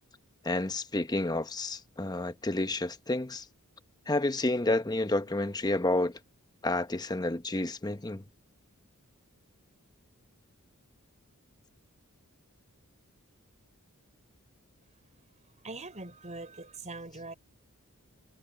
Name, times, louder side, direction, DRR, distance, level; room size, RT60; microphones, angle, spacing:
voice 1, 0.4-3.4 4.1-6.2 6.6-8.2, left 2 dB, 20° left, 0.9 m, -30 dB
voice 2, 15.6-17.3, right 3 dB, 30° right, 5.1 m, -42 dB
head